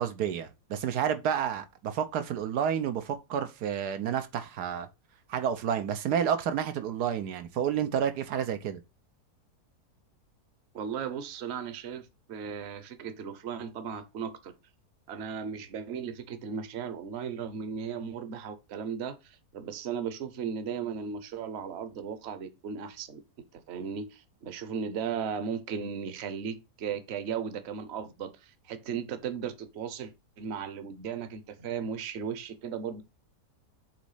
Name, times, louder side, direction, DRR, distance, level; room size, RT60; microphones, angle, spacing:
voice 1, 0.0-4.9 5.3-8.8, right 8 dB, 85° right, 1.4 m, -30 dB
voice 2, 10.7-14.5 15.1-23.2 23.5-33.0, right 7 dB, 50° right, 1.0 m, -36 dB
7.3 x 3.1 x 5.5 m
omnidirectional pair, 1.7 m